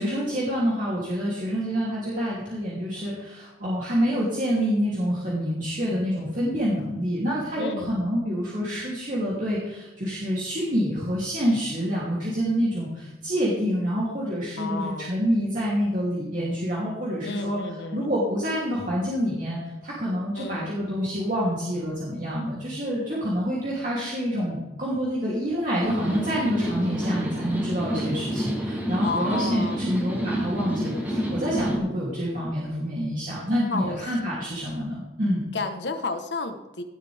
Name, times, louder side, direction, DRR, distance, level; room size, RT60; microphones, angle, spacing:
voice 1, 0.0-17.6 17.9-35.5, equal, 45° right, -7 dB, 3.0 m, -27 dB
voice 2, 7.5-8.7 14.6-15.2 17.2-18.1 20.3-20.7 29.0-29.8 33.7-34.0 35.5-36.8, left 3 dB, 80° left, 7 dB, 1.2 m, -32 dB
sound 1, 25.8-31.8, equal, 10° right, 2.5 m, -28 dB
17.5 x 8.4 x 3.5 m, 1.0 s
head